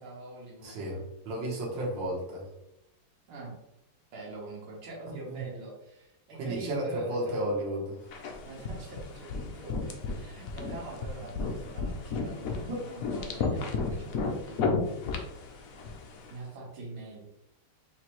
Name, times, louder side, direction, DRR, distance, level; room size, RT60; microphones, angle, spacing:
voice 1, 0.0-1.0 1.8-2.0 3.3-3.6 4.1-7.5 8.4-14.7 16.3-17.3, right 2 dB, 80° right, -3 dB, 2.0 m, -44 dB
voice 2, 0.6-2.5 5.1-5.5 6.4-8.1 12.7-12.8, right 1 dB, 65° right, -4 dB, 1.8 m, -33 dB
sound 1, 8.1-16.3, left 4 dB, 85° left, 0.7 m, -34 dB
4.9 x 3.2 x 3.0 m, 0.85 s
omnidirectional pair, 2.3 m